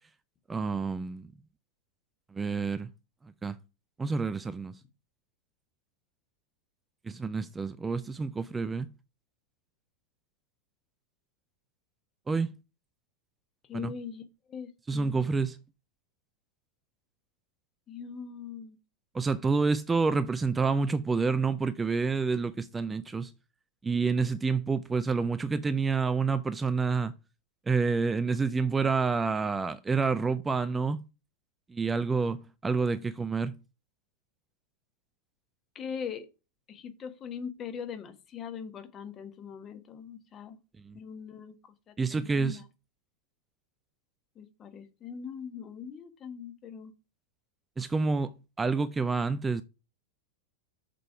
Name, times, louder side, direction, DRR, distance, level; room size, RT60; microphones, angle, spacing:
voice 1, 0.5-1.3 2.3-2.9 3.2-3.6 4.0-4.7 7.0-8.9 12.3-12.5 13.7-13.9 14.9-15.6 19.1-23.3 23.8-27.1 27.7-31.0 31.7-33.6 40.8-41.0 42.0-42.6 47.8-49.6, right 4 dB, 15° right, 0.4 m, -28 dB
voice 2, 13.7-14.2 14.5-15.3 17.9-18.8 35.7-36.3 36.7-40.6 40.9-41.6 41.9-42.6 44.4-46.9, left 7 dB, 25° left, 1.2 m, -41 dB
6.6 x 5.0 x 5.7 m
figure-of-eight pair, 90°, 0 cm